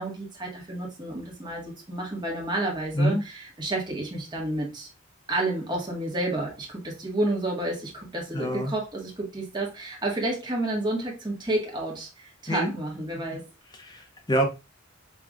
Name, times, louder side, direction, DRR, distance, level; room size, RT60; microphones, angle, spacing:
voice 1, 0.0-4.9 5.3-13.4, right 1 dB, 20° right, 1.6 m, -30 dB
voice 2, 8.3-8.7 12.5-12.7 13.8-14.4, equal, 20° left, 1.0 m, -26 dB
5.9 x 3.3 x 2.4 m
head